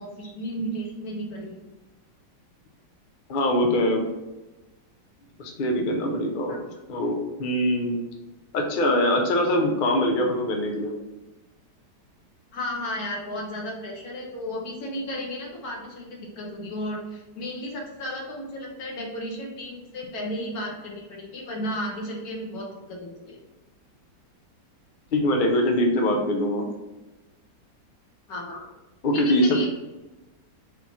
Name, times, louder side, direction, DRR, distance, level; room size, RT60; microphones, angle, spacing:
voice 1, 0.0-1.5 6.5-6.6 12.5-23.4 28.3-28.6 29.1-29.7, equal, 60° left, -1 dB, 1.4 m, -33 dB
voice 2, 3.3-4.0 5.4-6.6 6.9-8.0 8.5-10.9 25.1-26.7 29.0-29.5, left 1 dB, 90° left, 2 dB, 0.4 m, -23 dB
4.1 x 3.0 x 4.1 m, 1.1 s
omnidirectional pair, 1.9 m